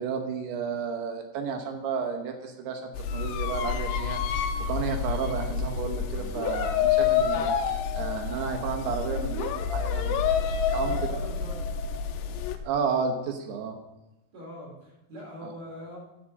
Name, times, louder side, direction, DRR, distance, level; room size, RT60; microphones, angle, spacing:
voice 1, 0.0-10.4 10.7-11.0 12.6-13.8 15.4-15.5, right 6 dB, 75° right, 4 dB, 3.0 m, -32 dB
sound 1, 2.9-12.6, left 7 dB, 80° left, 2.8 m, -28 dB
voice 2, 10.7-11.5 14.3-16.0, left 1 dB, 45° right, -3 dB, 4.4 m, -42 dB
8.0 x 7.6 x 7.3 m, 0.93 s
omnidirectional pair, 4.8 m